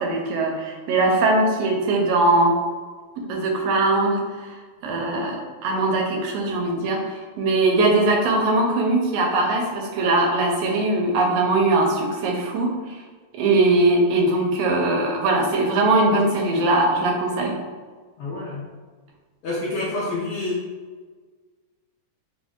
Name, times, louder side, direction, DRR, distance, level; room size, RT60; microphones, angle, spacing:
voice 1, 0.0-2.6 3.3-4.5 4.8-12.7 13.3-17.6, right 2 dB, 75° right, 1 dB, 1.5 m, -21 dB
voice 2, 18.2-18.7 19.4-20.6, left 2 dB, 80° left, -7 dB, 1.2 m, -28 dB
4.9 x 2.1 x 3.6 m, 1.5 s
omnidirectional pair, 3.4 m